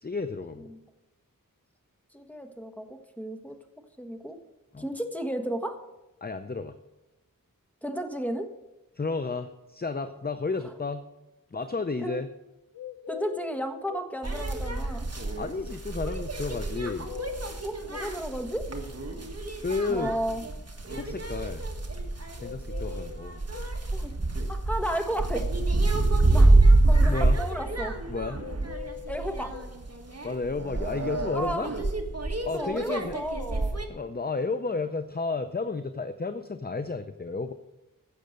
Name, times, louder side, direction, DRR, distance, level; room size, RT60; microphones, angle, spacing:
voice 1, 0.0-0.7 4.7-4.9 6.2-6.8 9.0-11.0 11.5-12.3 15.4-17.1 19.6-20.1 20.9-21.6 22.4-23.4 27.1-27.4 28.1-28.4 30.2-31.7 32.4-33.2 33.9-37.5, left 4 dB, 30° left, 9 dB, 0.6 m, -32 dB
voice 2, 2.1-3.5 4.0-4.4 4.8-5.8 7.8-8.5 12.0-12.2 13.1-15.1 17.6-18.7 19.9-20.4 22.8-23.0 23.9-24.1 24.5-25.5 26.3-26.5 26.9-28.0 29.1-29.5 31.3-31.8 32.5-33.8, equal, 5° left, 5 dB, 1.4 m, -33 dB
sound 1, 12.7-14.1 16.8-18.2 22.4-23.8 28.3-29.7, left 11 dB, 90° left, 0.7 m, -42 dB
sound 2, 14.2-33.8, right 2 dB, 45° right, 1.6 m, -27 dB
15.5 x 6.6 x 6.6 m, 1.0 s
wide cardioid pair, 55°, 34 cm